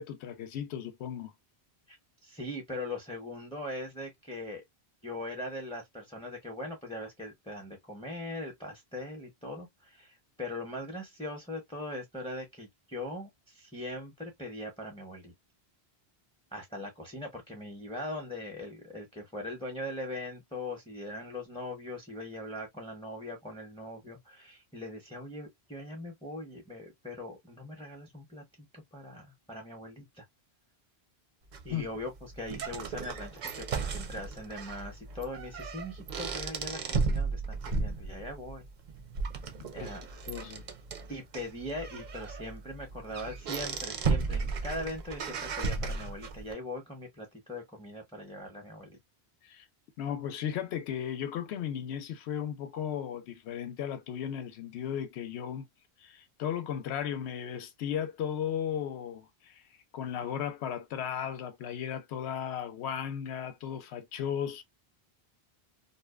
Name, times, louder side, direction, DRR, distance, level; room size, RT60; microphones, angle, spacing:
voice 1, 0.0-1.3 31.7-31.9 39.6-39.9 40.3-40.6 49.4-49.7 50.0-55.7 56.0-59.6 59.9-64.6, left 9 dB, 90° left, 0.8 m, -35 dB
voice 2, 2.2-4.6 5.0-15.3 16.5-30.2 31.6-38.7 39.7-40.0 41.1-49.0, left 1 dB, 5° left, 0.6 m, -41 dB
sound 1, 31.5-46.5, right 4 dB, 55° right, 0.6 m, -35 dB
2.6 x 2.1 x 2.2 m
omnidirectional pair, 1.1 m